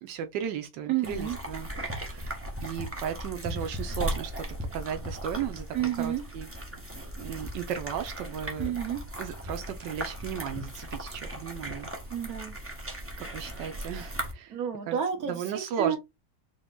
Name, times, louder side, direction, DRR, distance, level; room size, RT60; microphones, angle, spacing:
voice 1, 0.0-4.4 4.7-5.7 6.0-6.5 7.2-8.7 9.2-11.9 13.2-14.6 14.9-15.0 15.3-16.0, right 8 dB, 80° right, 1.3 m, -35 dB
voice 2, 0.9-1.4 5.7-6.2 8.6-9.0 12.1-12.5 14.5-16.0, right 9 dB, 55° right, 1.7 m, -30 dB
sound 1, 1.0-14.3, equal, 10° right, 0.7 m, -37 dB
4.8 x 2.2 x 3.8 m
omnidirectional pair, 1.9 m